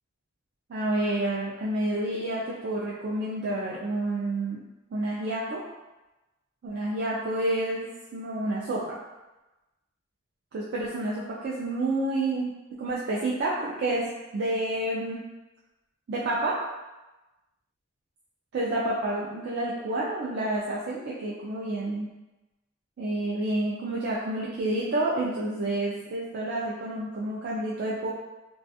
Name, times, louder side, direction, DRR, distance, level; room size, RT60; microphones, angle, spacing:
voice 1, 0.7-4.6 4.9-5.6 6.6-9.0 10.5-15.2 16.1-16.7 18.5-22.1 23.0-28.1, right 1 dB, 60° right, -6 dB, 0.4 m, -29 dB
2.3 x 2.3 x 2.5 m, 1.0 s
head